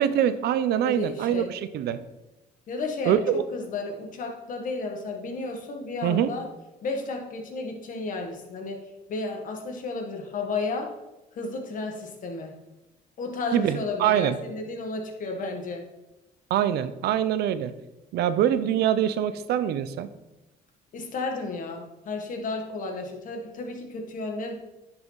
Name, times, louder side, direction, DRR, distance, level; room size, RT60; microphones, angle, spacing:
voice 1, 0.0-2.0 3.1-3.4 6.0-6.3 13.5-14.4 16.5-17.7 18.1-20.1, right 10 dB, 75° right, 13 dB, 0.7 m, -24 dB
voice 2, 0.8-1.5 2.7-6.5 6.8-8.8 9.1-11.0 11.3-12.6 13.2-15.8 20.9-24.5, left 3 dB, 50° left, 2 dB, 1.8 m, -33 dB
10.5 x 5.9 x 4.1 m, 1.0 s
cardioid pair, 110°, 17 cm